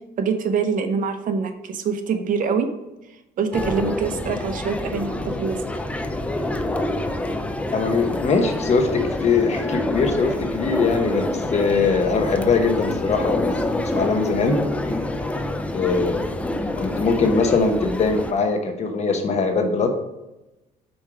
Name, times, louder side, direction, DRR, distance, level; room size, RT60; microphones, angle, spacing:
voice 1, 0.2-2.7 3.4-5.6, right 5 dB, 50° right, 7 dB, 0.8 m, -24 dB
sound 1, 3.5-18.3, left 1 dB, 10° left, 0.5 m, -27 dB
voice 2, 7.7-14.6 15.7-16.3 16.8-19.9, left 4 dB, 40° left, 5 dB, 1.0 m, -21 dB
5.2 x 4.5 x 4.8 m, 0.97 s
cardioid pair, 110°, 17 cm